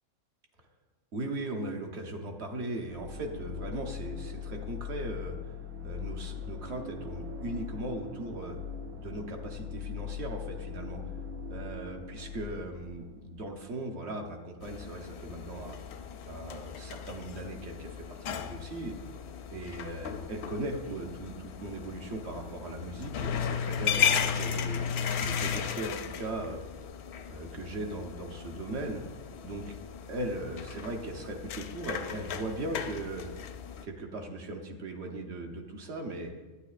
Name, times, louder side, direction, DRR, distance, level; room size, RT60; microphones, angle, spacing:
voice 1, 1.1-5.6 5.8-8.6 9.0-11.0 11.5-15.8 16.2-19.0 19.5-24.8 25.2-26.6 27.3-29.0 29.4-29.7 30.1-33.3 33.8-36.3, right 2 dB, 55° right, 3 dB, 1.1 m, -38 dB
sound 1, 2.9-13.7, left 6 dB, 80° right, 1.3 m, -40 dB
sound 2, 14.6-33.9, left 7 dB, 65° left, 0.7 m, -35 dB
11.5 x 9.2 x 2.4 m, 1.2 s
omnidirectional pair, 1.5 m